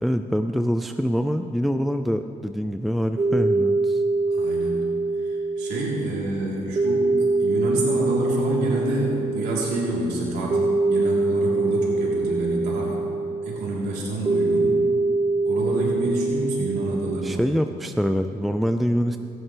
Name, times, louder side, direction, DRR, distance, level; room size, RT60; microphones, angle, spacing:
voice 1, 0.0-4.0 17.2-19.2, equal, ahead, 8 dB, 0.4 m, -24 dB
sound 1, 3.2-17.4, right 3 dB, 25° right, 0.7 m, -24 dB
voice 2, 4.3-4.9 5.1-7.1 7.4-13.0 13.4-14.8 15.5-17.5, right 1 dB, 75° right, -4 dB, 3.6 m, -28 dB
17.5 x 16.0 x 3.4 m, 2.9 s
cardioid pair, 110°, 17 cm